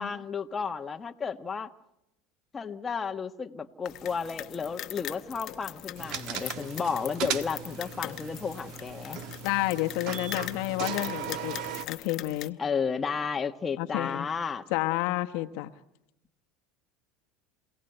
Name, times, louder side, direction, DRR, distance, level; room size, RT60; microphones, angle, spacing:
voice 1, 0.0-1.7 2.5-9.2 12.6-14.8, left 6 dB, 25° left, 6 dB, 1.2 m, -33 dB
sound 1, 3.8-12.5, left 13 dB, 50° left, 0.9 m, -41 dB
sound 2, 6.0-11.9, right 9 dB, 60° right, 1.5 m, -37 dB
voice 2, 9.4-11.6 11.9-12.6 13.8-14.3 14.7-15.7, left 17 dB, 70° left, 6 dB, 1.2 m, -30 dB
27.5 x 17.5 x 7.9 m, 0.86 s
supercardioid pair, 95°, 0 cm